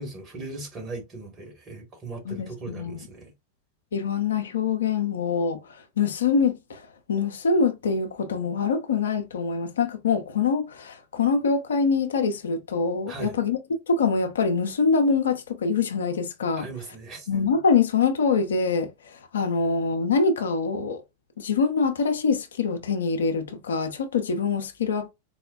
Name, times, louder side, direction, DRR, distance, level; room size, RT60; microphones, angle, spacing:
voice 1, 0.0-3.3 13.1-13.4 16.5-17.3, right 3 dB, 25° right, 1.5 m, -38 dB
voice 2, 2.3-3.0 3.9-5.6 6.0-13.6 13.9-16.7 17.3-21.0 21.4-25.1, left 5 dB, 65° left, 0.5 m, -24 dB
4.1 x 2.1 x 2.3 m
figure-of-eight pair, 90°, 0 cm